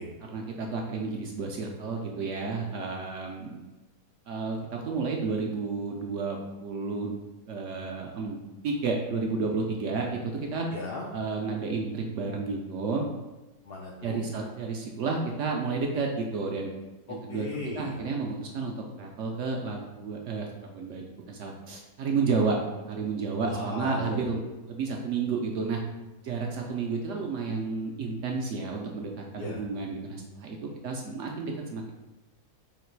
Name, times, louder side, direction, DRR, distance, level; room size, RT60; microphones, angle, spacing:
voice 1, 0.3-3.6 4.3-7.2 7.5-8.4 8.6-10.7 11.1-13.1 14.0-16.7 17.1-17.5 17.8-22.6 22.9-24.4 24.7-25.8 26.2-31.9, right 4 dB, 65° right, 1 dB, 0.8 m, -31 dB
voice 2, 10.7-11.1 13.6-14.3 17.1-18.0 23.4-24.2 29.4-29.6, left 2 dB, 80° left, -1 dB, 0.5 m, -36 dB
3.9 x 2.9 x 4.5 m, 1.1 s
omnidirectional pair, 1.6 m